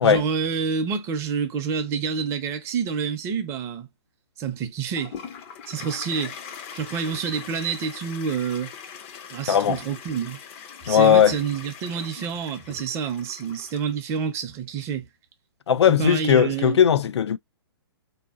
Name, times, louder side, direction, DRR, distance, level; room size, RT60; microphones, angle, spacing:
voice 1, 0.0-3.9 4.4-5.2 5.7-6.4 6.7-8.7 9.3-10.4 10.8-15.1 15.9-16.8, right 6 dB, 20° right, 0.6 m, -28 dB
Toilet flush, 5.0-14.2, left 7 dB, 30° left, 0.5 m, -41 dB
voice 2, 9.5-9.8 10.9-11.4 15.7-17.4, left 8 dB, 85° left, 0.4 m, -18 dB
3.6 x 2.8 x 2.3 m
hypercardioid pair, 145°, 14 cm